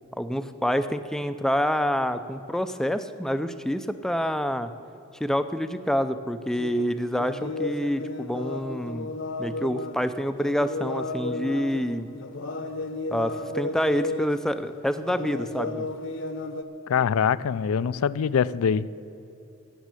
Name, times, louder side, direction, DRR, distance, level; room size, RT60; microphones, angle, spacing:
voice 1, 0.2-4.7 5.2-9.1 9.4-12.1 13.1-15.9, equal, ahead, 10 dB, 0.4 m, -27 dB
sound 1, 6.5-6.9 7.2-10.1 10.4-14.5 14.7-16.6, left 2 dB, 60° left, 0.8 m, -33 dB
voice 2, 16.9-18.9, left 7 dB, 80° left, 18 dB, 0.4 m, -23 dB
16.5 x 7.1 x 8.3 m, 2.9 s
head